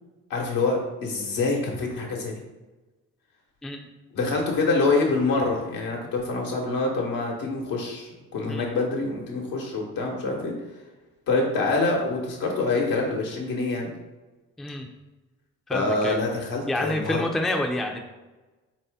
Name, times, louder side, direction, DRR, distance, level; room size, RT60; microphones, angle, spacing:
voice 1, 0.3-2.3 4.1-10.5 11.3-13.9 15.7-17.2, left 3 dB, 80° left, 0 dB, 1.1 m, -26 dB
voice 2, 15.7-16.2 16.7-18.0, left 1 dB, ahead, 2 dB, 0.4 m, -28 dB
3.8 x 2.8 x 3.4 m, 1.2 s
supercardioid pair, 65°, 34 cm